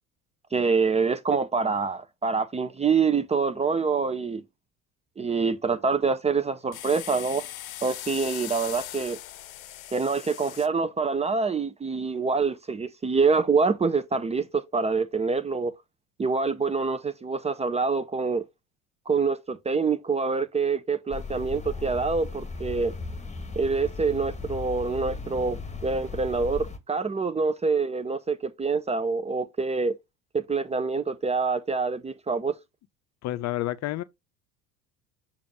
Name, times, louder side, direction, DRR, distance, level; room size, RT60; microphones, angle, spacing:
voice 1, 0.5-4.4 5.2-7.5 7.8-9.2 9.9-15.7 16.2-18.4 19.1-22.9 23.6-29.9 30.3-32.5, right 4 dB, 15° right, 0.5 m, -26 dB
sound 1, 6.7-10.7, left 13 dB, 75° left, 0.7 m, -39 dB
sound 2, 21.1-26.8, left 4 dB, 15° left, 1.4 m, -37 dB
voice 2, 33.2-34.0, left 15 dB, 40° left, 0.6 m, -29 dB
6.8 x 2.7 x 5.2 m
hypercardioid pair, 70°, 42 cm